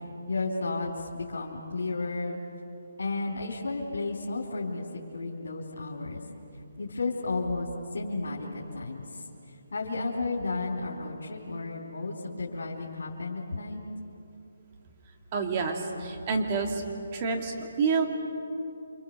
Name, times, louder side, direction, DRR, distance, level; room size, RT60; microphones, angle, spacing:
voice 1, 0.3-2.4 3.0-4.8 5.1-6.2 6.8-7.7 7.9-9.0 9.7-13.8, left 3 dB, 85° left, -3 dB, 3.8 m, -32 dB
voice 2, 15.3-16.8 17.1-18.1, right 4 dB, 30° right, 3 dB, 2.6 m, -28 dB
28.5 x 26.5 x 6.8 m, 2.8 s
hypercardioid pair, 165°, 0 cm